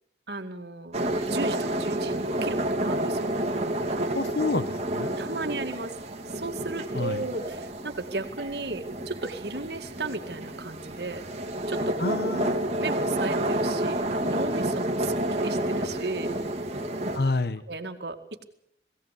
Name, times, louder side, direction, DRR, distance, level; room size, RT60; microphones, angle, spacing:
voice 1, 0.3-0.9 1.2-3.3 5.2-5.9 6.3-11.2 11.7-12.3 12.8-16.3 17.7-18.4, right 3 dB, 65° right, 5 dB, 2.2 m, -35 dB
sound 1, 0.9-17.2, right 1 dB, 35° right, 2.3 m, -29 dB
voice 2, 4.1-5.2 6.9-7.3 12.0-12.5 17.1-17.7, left 3 dB, 55° left, 13 dB, 0.9 m, -28 dB
21.5 x 16.5 x 8.4 m, 0.74 s
head